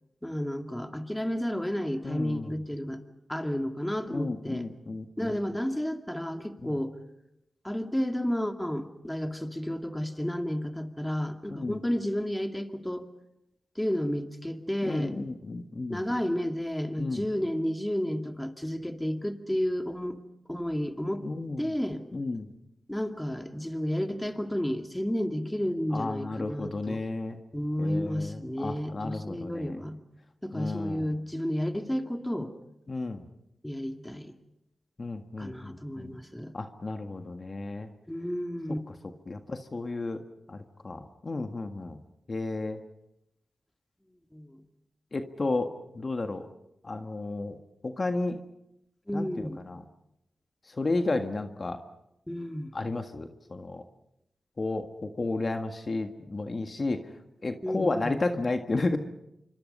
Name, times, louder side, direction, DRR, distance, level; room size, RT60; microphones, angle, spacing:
voice 1, 0.2-3.0 3.3-4.7 5.2-7.0 7.6-13.0 13.8-15.1 15.9-20.2 20.5-21.3 21.6-22.0 22.9-27.0 27.5-30.0 30.4-32.5 33.6-34.3 35.4-36.5 38.1-38.8 44.3-44.6 49.1-49.6 52.3-52.7 57.6-58.1, equal, 10° left, 6 dB, 2.3 m, -31 dB
voice 2, 2.0-2.6 4.1-5.3 6.6-6.7 11.5-11.8 14.8-16.0 17.0-17.2 21.2-21.7 22.1-22.5 25.9-27.4 27.8-29.8 30.5-31.1 32.9-33.2 35.0-36.2 36.5-37.9 39.3-40.2 40.5-40.6 40.8-42.0 42.3-42.8 45.1-46.5 46.8-47.6 47.8-48.4 49.1-49.8 50.7-51.8 52.7-53.8 54.6-57.0 57.4-59.0, left 2 dB, 45° left, 6 dB, 1.7 m, -32 dB
27.0 x 25.0 x 5.5 m, 0.86 s
cardioid pair, 55°, 0 cm